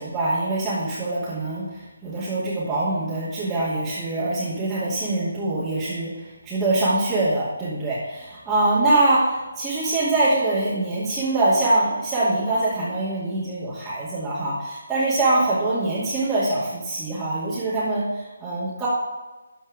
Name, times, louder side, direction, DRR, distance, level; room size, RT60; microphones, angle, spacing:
voice 1, 0.0-18.9, right 2 dB, 5° right, -13 dB, 2.4 m, -24 dB
13.0 x 4.6 x 4.9 m, 1.2 s
figure-of-eight pair, 150°, 0 cm